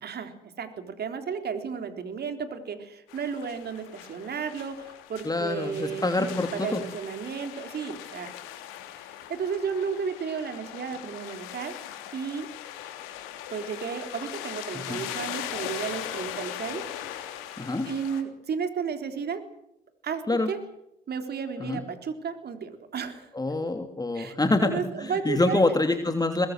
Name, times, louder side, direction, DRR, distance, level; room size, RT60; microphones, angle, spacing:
voice 1, 0.0-8.4 9.0-11.8 12.1-12.5 13.5-16.8 17.9-19.4 20.0-20.2 20.5-20.6 21.1-23.3 24.1-24.4 24.6-25.6, right 6 dB, 50° right, 7 dB, 3.9 m, -33 dB
sound 1, 3.1-18.2, left 11 dB, 75° left, 3.2 m, -40 dB
voice 2, 5.2-6.8 14.7-15.0 17.6-17.9 20.3-20.5 21.6-21.8 23.3-26.5, left 2 dB, 20° left, 6 dB, 3.0 m, -26 dB
24.0 x 21.0 x 7.9 m, 0.82 s
hypercardioid pair, 50°, 21 cm